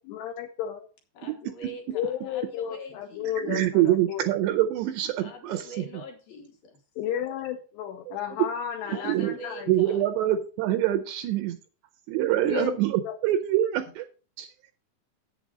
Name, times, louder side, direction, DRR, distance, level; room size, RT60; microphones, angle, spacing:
voice 1, 0.0-0.9 1.9-4.3 7.0-9.8 12.4-12.8 13.0-13.2, left 10 dB, 80° left, 5 dB, 2.5 m, -33 dB
voice 2, 1.2-3.5 5.2-6.8 8.8-10.1, left 1 dB, 60° left, 1 dB, 2.6 m, -44 dB
voice 3, 3.4-5.9 8.1-8.2 8.9-9.4 9.7-11.6 12.1-14.1 14.4-14.5, right 13 dB, 80° right, 8 dB, 2.6 m, -25 dB
8.6 x 7.4 x 4.9 m, 0.37 s
omnidirectional pair, 5.5 m